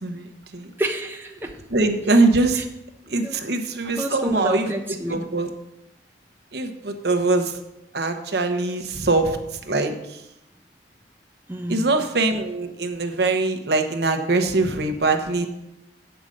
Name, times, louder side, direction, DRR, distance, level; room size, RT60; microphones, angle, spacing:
voice 1, 0.0-0.7 1.7-2.6 3.1-4.7 5.1-5.5 6.5-7.6 7.9-9.4 9.6-10.2 11.7-15.5, right 3 dB, 65° right, 5 dB, 1.0 m, -22 dB
voice 2, 0.8-1.5 2.5-2.6 3.1-3.5 4.0-5.2 11.5-11.9, right 1 dB, 10° right, 1 dB, 0.7 m, -29 dB
8.1 x 5.2 x 7.6 m, 0.86 s
head